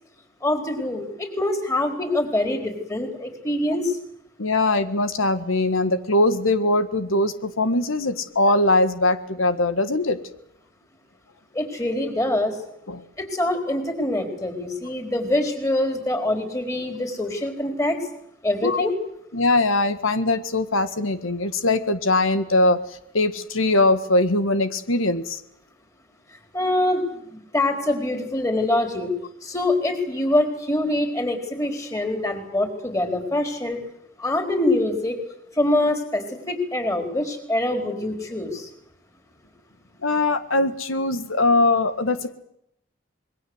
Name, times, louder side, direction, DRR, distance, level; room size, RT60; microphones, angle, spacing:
voice 1, 0.4-4.0 11.5-12.6 13.2-18.0 18.4-18.9 26.5-29.1 29.4-33.8 34.2-35.2 35.6-38.7, left 1 dB, 15° left, 6 dB, 4.5 m, -24 dB
voice 2, 4.4-10.2 12.9-13.0 18.6-18.9 19.3-25.4 40.0-42.3, left 2 dB, 90° left, 11 dB, 1.7 m, -21 dB
26.5 x 22.0 x 8.1 m, 0.76 s
head